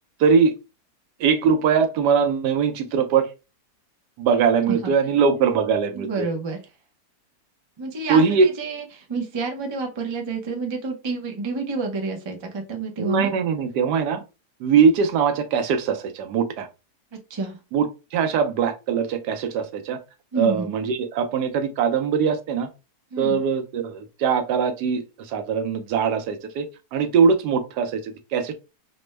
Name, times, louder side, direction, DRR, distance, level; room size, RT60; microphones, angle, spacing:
voice 1, 0.2-0.5 1.2-3.3 4.2-6.3 8.1-8.5 13.0-14.2 14.6-16.7 17.7-20.0 20.4-22.7 23.2-26.7 26.9-28.5, right 6 dB, 85° right, 1.2 m, -21 dB
voice 2, 5.9-6.6 7.8-13.3 17.3-17.6 20.3-20.7 23.1-23.4, right 3 dB, 40° right, 0.4 m, -29 dB
5.0 x 2.1 x 3.2 m
omnidirectional pair, 1.7 m